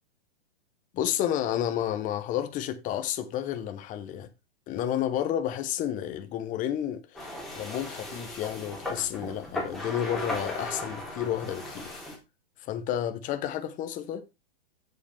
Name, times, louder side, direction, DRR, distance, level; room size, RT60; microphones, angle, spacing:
voice 1, 0.9-4.3 4.7-12.0 12.6-14.2, left 10 dB, 25° left, 1.0 m, -31 dB
sound 1, 7.1-12.2, left 1 dB, ahead, 3.5 m, -37 dB
8.3 x 8.0 x 3.4 m
hypercardioid pair, 125°, 32 cm